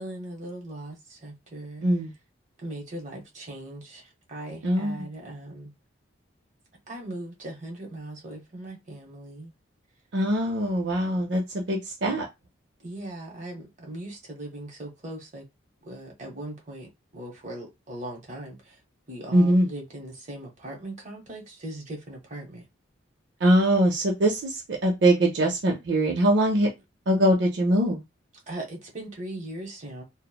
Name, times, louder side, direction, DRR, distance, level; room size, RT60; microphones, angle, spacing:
voice 1, 0.0-1.8 2.6-5.7 6.9-9.5 12.8-15.4 15.8-18.8 19.1-22.6 28.5-30.0, right 1 dB, 40° right, 0.9 m, -39 dB
voice 2, 4.6-5.1 10.1-12.3 19.3-19.7 23.4-26.7 27.1-28.0, right 1 dB, 65° right, 0.5 m, -22 dB
3.0 x 2.0 x 2.3 m
head